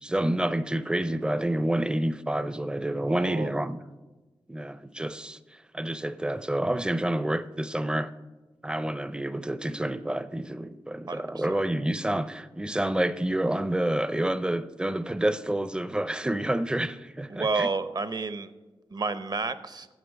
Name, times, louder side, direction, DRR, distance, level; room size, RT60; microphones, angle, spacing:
voice 1, 0.0-3.8 4.5-5.4 5.7-8.1 8.6-17.7, right 1 dB, 10° right, 0.5 m, -28 dB
voice 2, 3.1-3.6 11.1-11.6 17.3-18.5 18.9-19.9, right 3 dB, 45° right, 0.7 m, -30 dB
10.0 x 7.6 x 6.3 m
wide cardioid pair, 80°, 9 cm